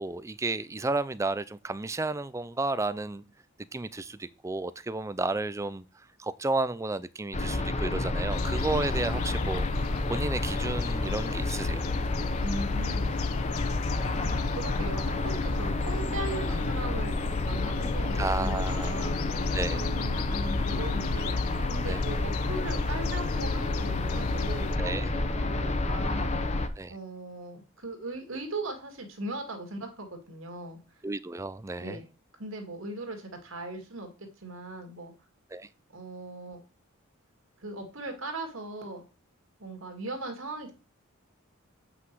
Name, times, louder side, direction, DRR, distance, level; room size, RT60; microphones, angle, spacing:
voice 1, 0.0-3.2 3.7-5.8 6.2-9.7 10.1-11.8 18.2-18.9 19.5-19.8 21.9-22.0 24.8-25.1 26.8-26.9 31.0-32.0 35.5-35.7, right 3 dB, 15° right, 0.4 m, -32 dB
sound 1, 7.3-26.7, left 2 dB, 30° left, 0.8 m, -30 dB
sound 2, 8.3-24.8, left 7 dB, 75° left, 0.3 m, -36 dB
voice 2, 12.4-13.1 14.2-19.3 19.7-21.4 21.7-25.1 25.4-26.5 26.9-30.8 31.7-32.1 32.4-35.1 35.9-36.6 37.6-39.0 39.6-40.7, right 2 dB, 70° right, 2.3 m, -39 dB
8.1 x 6.0 x 4.6 m
head